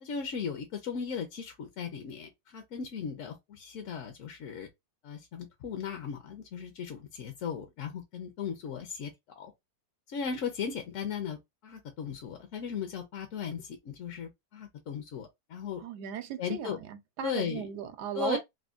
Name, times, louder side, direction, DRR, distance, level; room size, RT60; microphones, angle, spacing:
voice 1, 0.0-4.7 5.0-9.5 10.1-15.8 16.4-16.8 17.2-17.7 18.1-18.4, left 7 dB, 65° left, 0.8 m, -37 dB
voice 2, 15.8-18.4, right 9 dB, 85° right, 1.2 m, -36 dB
3.5 x 2.1 x 2.4 m
omnidirectional pair, 1.7 m